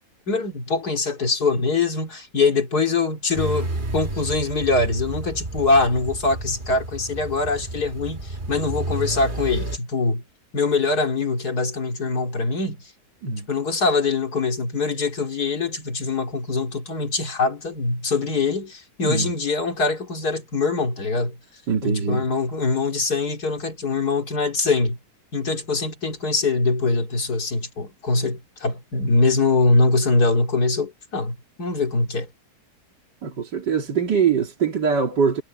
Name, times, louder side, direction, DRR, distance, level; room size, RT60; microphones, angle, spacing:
voice 1, 0.3-10.2 10.5-12.8 13.5-21.4 21.8-25.0 25.3-32.3, left 3 dB, 60° left, 3.4 m, -23 dB
sound 1, 3.4-9.8, right 2 dB, 30° right, 1.7 m, -31 dB
voice 2, 21.7-22.3 33.2-35.4, right 6 dB, 80° right, 3.0 m, -22 dB
omnidirectional pair, 1.8 m